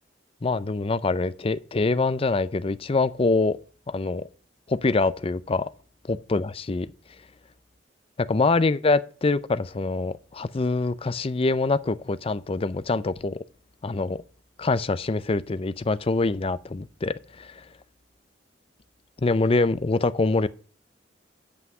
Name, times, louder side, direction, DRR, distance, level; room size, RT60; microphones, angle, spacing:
voice 1, 0.4-3.6 3.9-4.3 4.7-5.7 6.1-6.9 8.2-13.4 13.8-14.2 14.6-17.6 19.2-20.5, left 3 dB, 30° left, 0.5 m, -24 dB
8.4 x 5.7 x 7.5 m
head